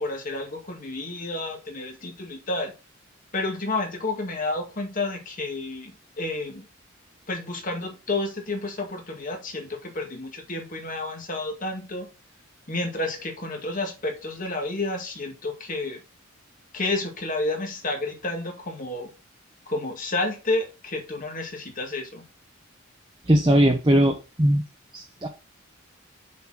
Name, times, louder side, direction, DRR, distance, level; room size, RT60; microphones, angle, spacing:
voice 1, 0.0-2.7 3.3-6.6 7.3-12.1 12.7-16.0 16.7-19.1 19.7-22.2, left 2 dB, 40° left, 2.1 m, -30 dB
voice 2, 23.3-24.6 24.9-25.3, right 1 dB, 20° right, 0.9 m, -20 dB
7.0 x 4.4 x 6.3 m
head